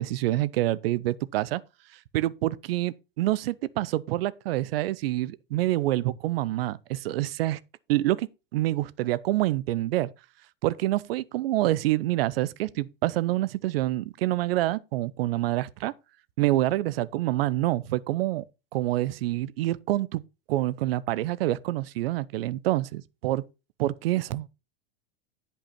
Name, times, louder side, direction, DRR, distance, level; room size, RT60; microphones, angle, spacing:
voice 1, 0.0-1.6 2.1-7.6 7.9-10.1 10.6-15.9 16.4-18.4 18.7-20.2 20.5-23.4 23.8-24.5, right 16 dB, 75° right, 0.7 m, -27 dB
10.0 x 5.5 x 4.3 m
supercardioid pair, 125°, 29 cm